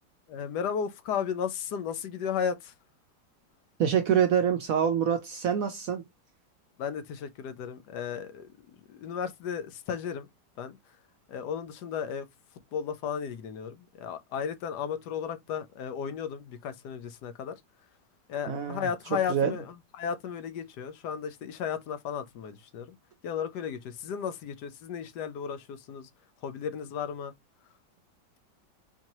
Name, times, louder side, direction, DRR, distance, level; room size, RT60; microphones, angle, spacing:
voice 1, 0.3-2.7 6.8-8.5 8.9-10.3 10.6-10.8 11.3-12.3 12.7-17.6 18.3-23.0 23.2-26.1 26.4-27.3, left 7 dB, 75° left, 1.1 m, -34 dB
voice 2, 3.8-6.0 18.5-18.9 19.3-19.6, right 8 dB, 70° right, 0.8 m, -26 dB
4.5 x 2.7 x 2.9 m
omnidirectional pair, 1.9 m